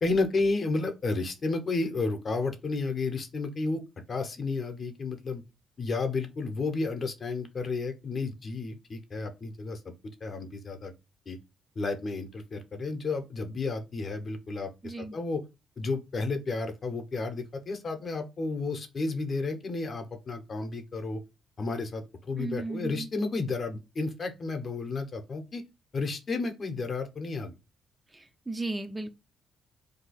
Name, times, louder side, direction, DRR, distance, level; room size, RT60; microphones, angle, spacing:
voice 1, 0.0-3.8 4.1-5.4 5.8-9.9 10.2-10.9 11.3-11.4 11.8-15.4 15.8-21.2 21.6-25.6 25.9-27.5, left 3 dB, 45° left, 0.7 m, -32 dB
voice 2, 14.8-15.1 22.4-23.1 28.1-29.1, right 3 dB, 20° right, 0.4 m, -35 dB
2.7 x 2.3 x 4.1 m
cardioid pair, 90°, 0 cm